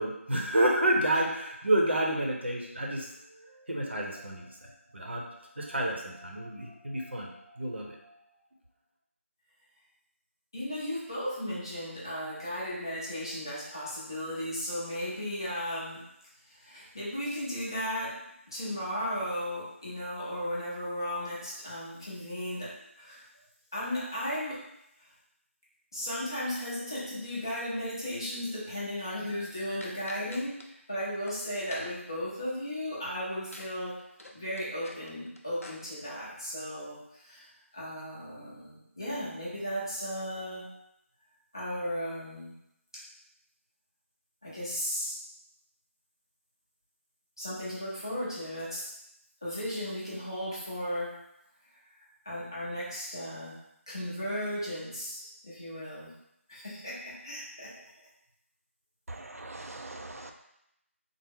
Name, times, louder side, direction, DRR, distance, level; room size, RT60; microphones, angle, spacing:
voice 1, 0.0-8.2, right 1 dB, 50° right, -1 dB, 0.7 m, -30 dB
voice 2, 10.5-16.0 16.5-18.2 18.5-23.2 23.7-24.6 25.9-34.0 34.3-37.5 37.7-40.7 41.5-42.5 44.4-45.2 47.4-48.8 49.4-51.1 52.2-53.6 53.9-56.1 56.5-57.7, equal, 20° left, -8 dB, 0.6 m, -35 dB
sound 1, 29.8-30.7 31.1-31.3 31.7-32.1 33.5-33.7 34.0-35.8, left 1 dB, 80° left, 0.6 m, -48 dB
voice 3, 59.1-60.3, right 2 dB, 90° right, 4 dB, 0.4 m, -42 dB
3.4 x 2.0 x 3.6 m, 0.82 s
figure-of-eight pair, 180°, 8 cm